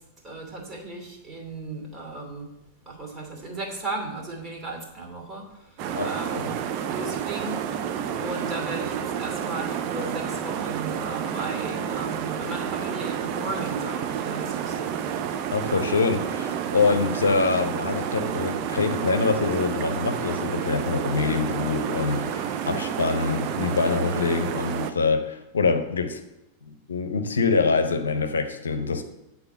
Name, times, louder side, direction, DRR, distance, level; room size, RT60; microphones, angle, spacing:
voice 1, 0.2-2.5 2.9-5.8 6.0-6.5 6.9-7.8 8.2-14.9, right 2 dB, 25° right, 0 dB, 2.6 m, -35 dB
sound 1, 5.8-24.9, right 8 dB, 40° right, 0.7 m, -30 dB
voice 2, 5.9-6.5 15.5-26.2 26.7-29.0, left 4 dB, 70° left, 8 dB, 0.8 m, -25 dB
9.0 x 4.2 x 6.9 m, 0.92 s
figure-of-eight pair, 90°, 0 cm